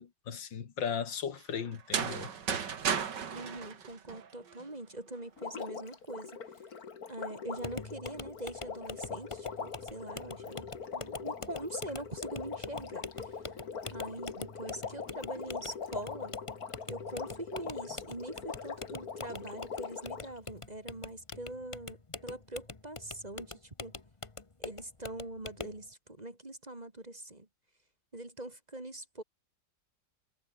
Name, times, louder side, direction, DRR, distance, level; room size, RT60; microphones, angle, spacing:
voice 1, 0.0-2.3, left 7 dB, 85° left, 2.6 m, -37 dB
sound 1, 1.7-4.6, right 7 dB, 70° right, 2.4 m, -34 dB
voice 2, 3.3-6.6 7.1-10.7 10.9-13.6 13.9-16.3 16.9-23.9 24.6-27.5 28.1-29.2, right 1 dB, 20° right, 2.3 m, -43 dB
Water, 5.4-20.4 21.3-21.4, left 6 dB, 55° left, 2.4 m, -42 dB
sound 2, 7.6-25.8, left 3 dB, 20° left, 1.0 m, -45 dB
omnidirectional pair, 2.0 m